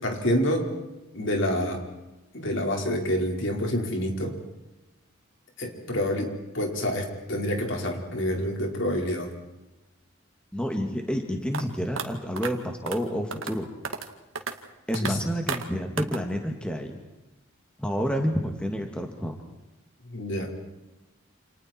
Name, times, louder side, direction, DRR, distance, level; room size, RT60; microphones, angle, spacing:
voice 1, 0.0-0.7 1.1-1.8 2.3-4.3 5.6-9.3 15.0-15.2 20.1-20.5, equal, 60° left, 1 dB, 5.0 m, -27 dB
voice 2, 10.5-13.7 14.9-17.0 17.8-19.4, equal, 5° left, 3 dB, 2.2 m, -29 dB
sound 1, 11.5-11.6 12.0-12.1 12.4-12.5 12.9-13.0 13.3-13.5 13.8-14.1 14.4-14.5 14.9-15.1 15.5-15.6 16.0-16.2, right 5 dB, 70° right, 2.2 m, -32 dB
29.0 x 29.0 x 4.6 m, 1.0 s
head